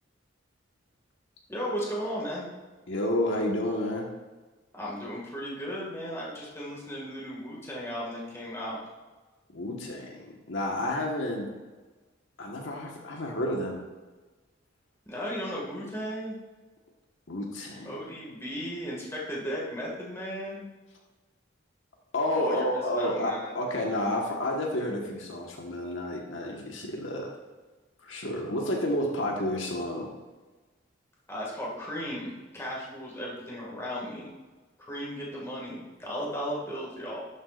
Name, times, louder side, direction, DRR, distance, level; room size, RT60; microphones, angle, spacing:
voice 1, 1.5-2.5 4.7-8.8 15.1-16.4 17.8-20.7 22.3-23.5 31.3-34.3 34.9-37.2, equal, 15° left, -5 dB, 2.1 m, -35 dB
voice 2, 2.9-4.1 9.5-11.5 12.4-13.8 17.3-18.0 22.1-27.3 28.0-30.1, left 1 dB, 85° left, 0 dB, 1.5 m, -30 dB
11.5 x 7.4 x 2.6 m, 1.3 s
head